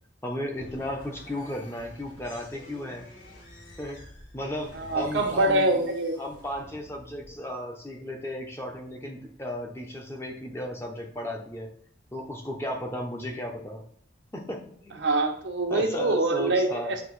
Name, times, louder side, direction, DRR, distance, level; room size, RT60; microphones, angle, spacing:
voice 1, 0.2-3.0 3.8-4.0 4.3-5.8 6.2-11.7 12.1-13.8 14.3-15.0 15.7-16.9, left 1 dB, 15° left, 1 dB, 0.9 m, -35 dB
sound 1, 0.5-7.5, left 1 dB, 45° left, 3.0 m, -49 dB
voice 2, 4.7-6.2 15.0-17.0, right 2 dB, 90° right, 2 dB, 1.1 m, -24 dB
8.2 x 3.0 x 4.7 m, 0.62 s
head